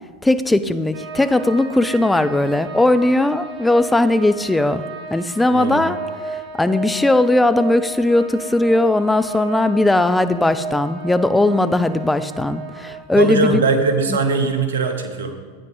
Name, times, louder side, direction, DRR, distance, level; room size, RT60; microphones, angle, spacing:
voice 1, 0.2-4.8 5.1-6.0 6.6-13.6 14.1-14.2, left 2 dB, 5° left, 12 dB, 0.5 m, -18 dB
sound 1, 0.9-13.0, right 4 dB, 45° right, 1.1 m, -33 dB
voice 2, 5.5-5.9 13.1-15.3, right 4 dB, 70° right, 6 dB, 1.2 m, -20 dB
12.5 x 9.0 x 3.8 m, 1.5 s
figure-of-eight pair, 90°, 0 cm